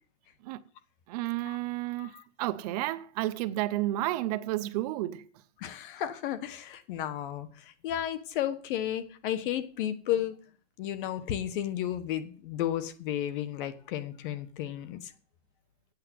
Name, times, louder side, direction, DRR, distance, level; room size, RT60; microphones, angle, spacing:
voice 1, 1.1-5.3, right 16 dB, 35° right, 0.6 m, -31 dB
voice 2, 5.6-10.4 10.8-15.1, left 11 dB, 45° left, 1.4 m, -33 dB
8.9 x 7.7 x 7.7 m
supercardioid pair, 170°, 36 cm